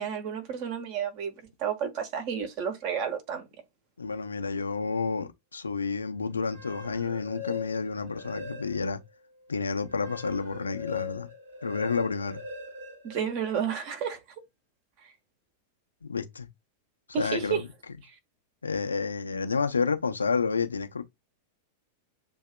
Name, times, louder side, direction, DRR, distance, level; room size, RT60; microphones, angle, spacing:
voice 1, 0.0-1.3 1.6-3.5 13.0-14.2 17.1-17.6, right 7 dB, 45° right, 1.3 m, -31 dB
voice 2, 4.0-9.0 9.5-11.3 11.6-12.4 16.0-16.5 17.2-17.7 18.6-21.0, left 4 dB, 80° left, 0.6 m, -30 dB
sound 1, 6.4-9.0 9.5-13.8, left 5 dB, 75° right, 2.3 m, -41 dB
6.8 x 2.8 x 2.2 m
figure-of-eight pair, 90°, 0 cm